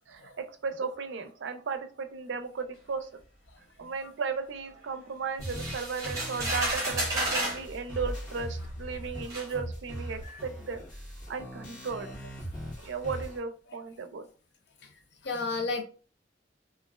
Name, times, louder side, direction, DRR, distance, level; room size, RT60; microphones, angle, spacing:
voice 1, 0.1-3.1 3.8-10.8 11.3-12.1 12.8-14.3, right 5 dB, 75° right, 8 dB, 0.4 m, -35 dB
sound 1, 5.4-13.4, right 1 dB, 45° left, 1.2 m, -40 dB
sound 2, 5.4-7.6 8.6-8.7 9.3-9.5, right 1 dB, 20° right, 1.0 m, -31 dB
voice 2, 15.2-15.8, left 3 dB, 65° left, 6 dB, 0.5 m, -32 dB
3.1 x 2.4 x 2.3 m, 0.38 s
head